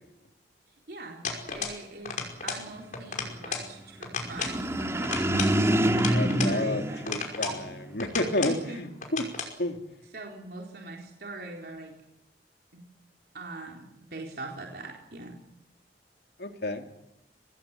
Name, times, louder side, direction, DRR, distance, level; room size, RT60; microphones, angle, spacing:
voice 1, 0.7-1.2 1.5-2.2 2.4-5.1 5.8-7.1 8.2-8.8 10.1-11.9 12.7-12.8 13.3-15.4, right 2 dB, 60° right, 0 dB, 4.1 m, -42 dB
sound 1, 1.2-1.8 2.1-2.7 2.9-3.7 4.0-4.6 5.0-6.6 7.1-7.6 8.0-8.6 9.0-9.5, left 5 dB, 45° left, 5.4 m, -34 dB
sound 2, 4.2-7.8, right 1 dB, 15° right, 2.0 m, -26 dB
voice 2, 6.1-9.2 9.6-9.8 16.4-16.9, left 1 dB, 70° left, 5 dB, 2.9 m, -31 dB
25.0 x 19.5 x 8.3 m, 0.90 s
head